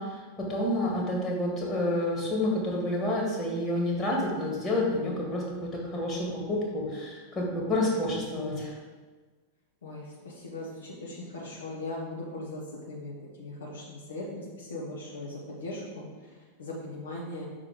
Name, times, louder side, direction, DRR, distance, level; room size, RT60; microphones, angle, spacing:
voice 1, 0.0-8.7, left 1 dB, 20° left, -2 dB, 1.8 m, -29 dB
voice 2, 9.8-17.5, left 2 dB, 65° left, -4 dB, 1.2 m, -39 dB
6.0 x 4.3 x 4.8 m, 1.4 s
figure-of-eight pair, 90°, 0 cm